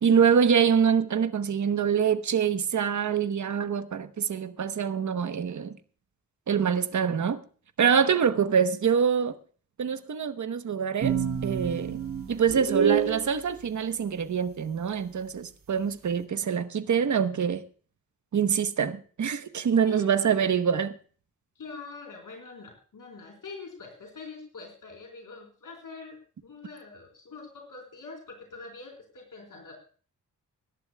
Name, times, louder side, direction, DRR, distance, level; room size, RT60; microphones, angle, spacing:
voice 1, 0.0-5.8 6.5-7.4 7.8-9.4 9.8-12.0 12.3-17.6 18.3-20.9, right 7 dB, 60° right, 1.0 m, -25 dB
voice 2, 7.8-8.2 19.7-20.1 21.6-29.7, left 4 dB, 70° left, 4.1 m, -44 dB
sound 1, 11.0-13.2, right 7 dB, 80° right, 2.2 m, -26 dB
24.5 x 11.5 x 2.3 m
wide cardioid pair, 90°, 33 cm